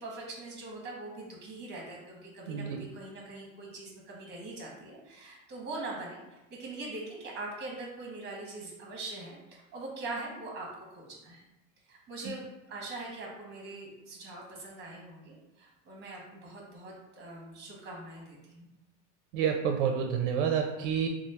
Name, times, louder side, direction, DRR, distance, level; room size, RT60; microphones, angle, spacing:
voice 1, 0.0-11.4 11.9-12.4 12.7-18.7, right 2 dB, 30° right, -1 dB, 1.1 m, -42 dB
voice 2, 2.5-2.8 12.3-12.4 19.3-21.1, right 7 dB, 75° right, 4 dB, 0.5 m, -29 dB
3.0 x 2.0 x 4.1 m, 0.99 s
supercardioid pair, 135°, 36 cm